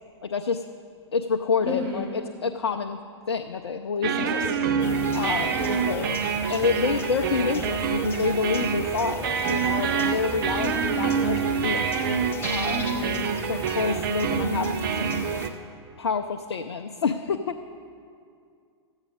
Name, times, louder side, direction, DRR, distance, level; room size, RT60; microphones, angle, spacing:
voice 1, 0.2-0.6 1.1-3.0 3.3-4.5 5.1-5.6 5.9-6.2 6.5-11.9 12.5-12.8 13.4-15.3 16.0-17.6, left 5 dB, 65° left, 6 dB, 0.5 m, -28 dB
voice 2, 1.6-2.1 4.1-4.9 5.5-6.0 10.5-11.1 12.7-13.2, equal, 30° right, -6 dB, 3.3 m, -33 dB
sound 1, 4.0-15.5, right 6 dB, 50° right, 0.6 m, -26 dB
sound 2, 4.8-15.5, left 2 dB, 15° left, 0.8 m, -38 dB
13.5 x 8.1 x 5.1 m, 2.3 s
figure-of-eight pair, 105°, 14 cm